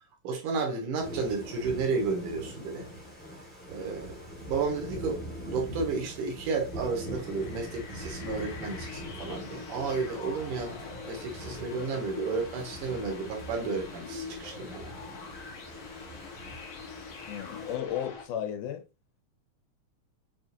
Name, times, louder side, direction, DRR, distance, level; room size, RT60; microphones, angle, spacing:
voice 1, 0.2-2.9 3.7-4.2 4.5-5.2 5.5-14.9, right 4 dB, 80° right, 2.7 m, -32 dB
Thunder / Rain, 1.0-17.7, equal, 10° left, 0.5 m, -43 dB
sound 1, 6.7-18.2, left 5 dB, 65° left, 1.3 m, -44 dB
voice 2, 17.3-18.8, left 10 dB, 90° left, 2.3 m, -34 dB
6.3 x 2.4 x 2.6 m
omnidirectional pair, 3.5 m